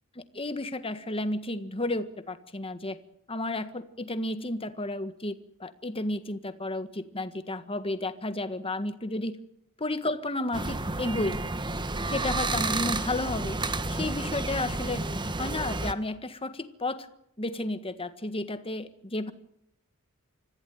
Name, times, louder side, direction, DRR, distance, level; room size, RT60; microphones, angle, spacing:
voice 1, 0.1-3.0 3.3-9.4 9.8-11.4 12.1-13.6 13.9-15.0 15.4-17.1 17.4-19.3, left 2 dB, 25° left, 11 dB, 1.6 m, -32 dB
sound 1, 10.5-15.9, right 2 dB, 20° right, 1.3 m, -31 dB
25.5 x 15.5 x 9.4 m, 0.77 s
head